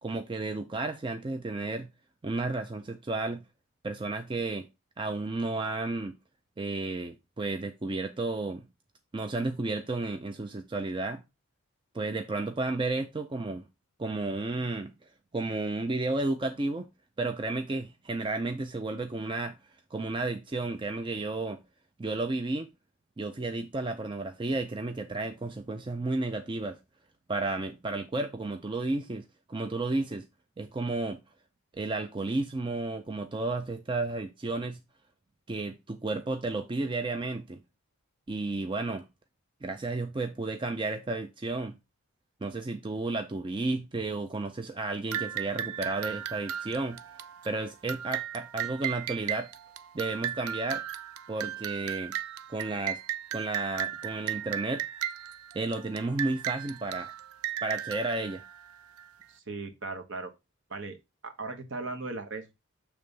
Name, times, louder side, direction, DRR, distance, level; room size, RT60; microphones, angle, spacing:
voice 1, 0.0-1.9 2.2-3.4 3.8-4.7 5.0-6.2 6.6-8.7 9.1-11.2 11.9-13.6 14.0-14.9 15.3-16.9 17.2-19.6 19.9-21.6 22.0-22.7 23.2-26.8 27.3-30.3 30.6-31.2 31.7-34.8 35.5-37.6 38.3-39.1 39.6-41.8 42.4-47.0 47.4-49.5 49.9-50.8 51.3-52.1 52.5-53.0 53.3-54.8 55.5-57.1 57.6-58.4, right 2 dB, 20° right, 0.4 m, -32 dB
sound 1, 45.1-59.2, right 10 dB, 75° right, 0.5 m, -36 dB
voice 2, 59.3-60.3 60.7-61.0 61.2-62.5, right 3 dB, 55° right, 1.1 m, -37 dB
6.8 x 3.4 x 5.3 m
head